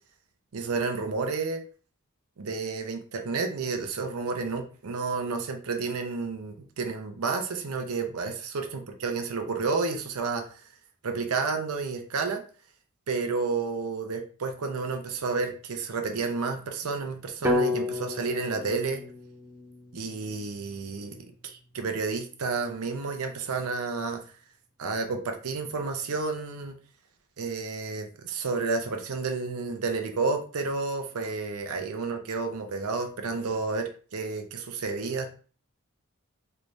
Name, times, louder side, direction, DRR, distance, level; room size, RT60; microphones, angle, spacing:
voice 1, 0.5-1.6 2.4-8.7 9.0-10.4 11.0-12.4 13.1-19.0 19.9-24.2 24.8-26.7 27.4-35.3, right 4 dB, 85° right, 5 dB, 0.6 m, -31 dB
sound 1, 17.4-21.5, left 2 dB, 10° right, 0.3 m, -32 dB
3.2 x 2.6 x 3.1 m, 0.39 s
head